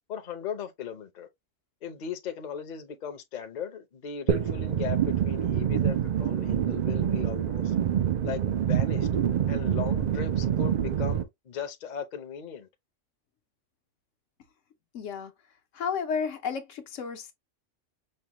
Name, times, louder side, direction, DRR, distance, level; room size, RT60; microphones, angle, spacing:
voice 1, 0.1-1.3 1.8-7.7 8.2-9.1 9.5-12.7, left 7 dB, 45° left, 0.7 m, -37 dB
sound 1, 4.3-11.2, right 9 dB, 60° right, 0.4 m, -26 dB
voice 2, 14.9-15.3 15.7-17.3, left 6 dB, 80° left, 1.1 m, -32 dB
5.4 x 2.1 x 2.9 m
omnidirectional pair, 1.3 m